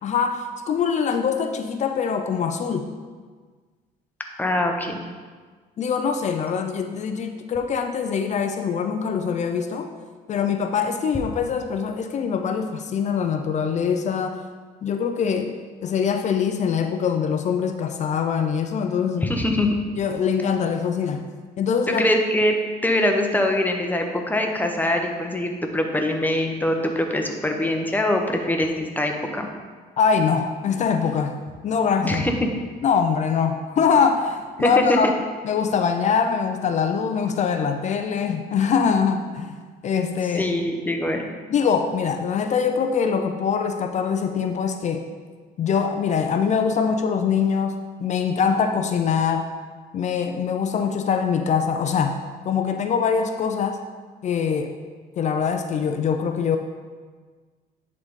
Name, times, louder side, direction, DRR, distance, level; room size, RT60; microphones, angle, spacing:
voice 1, 0.0-2.9 5.8-9.9 10.3-14.4 14.8-15.6 15.8-19.3 19.9-21.3 21.6-22.1 30.0-31.4 31.6-32.3 32.8-35.1 35.4-39.6 39.8-40.5 41.5-45.0 45.6-49.5 49.9-52.2 52.4-53.8 54.2-54.7 55.2-56.6, left 6 dB, 45° left, 6 dB, 0.5 m, -23 dB
voice 2, 4.4-5.0 19.2-19.8 21.9-22.6 22.8-29.5 32.0-32.3 34.6-35.1 40.4-41.3, left 1 dB, 10° left, 3 dB, 0.8 m, -23 dB
9.9 x 3.9 x 3.7 m, 1.5 s
cardioid pair, 110°, 17 cm